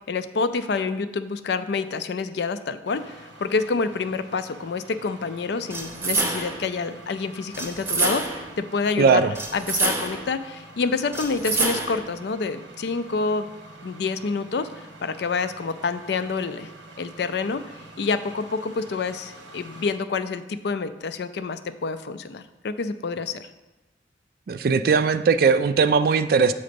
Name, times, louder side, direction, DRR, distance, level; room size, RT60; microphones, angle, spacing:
voice 1, 0.0-9.2 9.5-13.5 13.8-16.7 17.0-23.5, left 4 dB, 65° left, 11 dB, 0.4 m, -28 dB
sound 1, 2.9-20.0, right 2 dB, 80° right, 1.0 m, -46 dB
sound 2, 5.7-6.7 7.5-8.5 9.3-10.3 11.1-12.1, right 3 dB, 15° right, 0.6 m, -27 dB
voice 2, 9.0-9.3 24.5-26.5, right 5 dB, 50° right, 12 dB, 0.3 m, -19 dB
7.5 x 3.9 x 5.2 m, 1.1 s
head